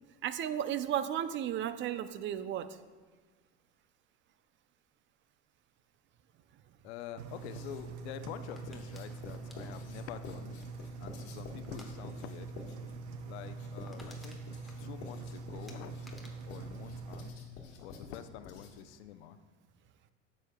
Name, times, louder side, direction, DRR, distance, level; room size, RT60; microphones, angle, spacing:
voice 1, 0.2-2.8, right 10 dB, 35° right, 13 dB, 0.4 m, -34 dB
voice 2, 6.8-10.5 11.0-12.5 13.2-14.4 14.8-16.0 16.5-17.3 17.8-19.4, left 10 dB, 80° left, 10 dB, 0.6 m, -46 dB
Engine, 7.2-17.3, right 4 dB, 85° right, 0.7 m, -44 dB
Writing, 7.3-8.0 8.7-19.0, left 3 dB, 55° left, 1.4 m, -50 dB
sound 1, 8.5-11.0 11.6-11.9 12.2-12.5 12.7-12.8 13.2-13.3 13.6-15.3 15.7-17.7 18.0-18.4, left 1 dB, ahead, 1.1 m, -57 dB
9.4 x 7.5 x 2.2 m, 1.4 s
supercardioid pair, 95°, 33 cm